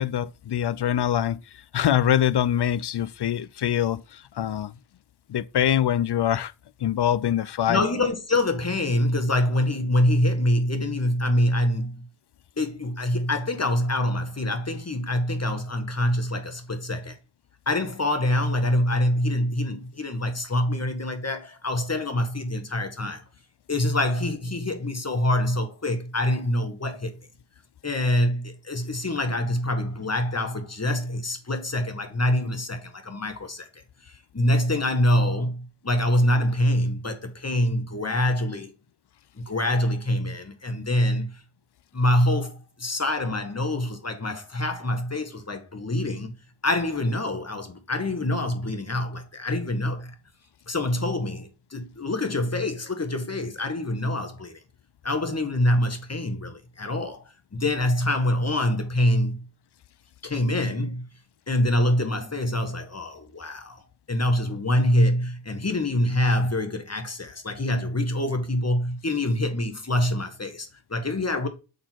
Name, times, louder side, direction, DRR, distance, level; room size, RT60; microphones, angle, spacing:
voice 1, 0.0-1.4 1.7-4.7 5.3-6.5 6.8-7.8, left 10 dB, 55° left, 0.5 m, -24 dB
voice 2, 7.7-12.1 12.6-17.2 17.6-23.2 23.7-27.1 27.8-33.7 34.1-38.7 39.4-41.4 41.9-46.3 46.6-50.1 50.7-54.6 55.0-57.2 57.5-59.5 60.2-61.1 61.5-63.8 64.1-71.5, left 1 dB, 30° left, 1.5 m, -25 dB
6.7 x 3.7 x 4.5 m
cardioid pair, 55°, 49 cm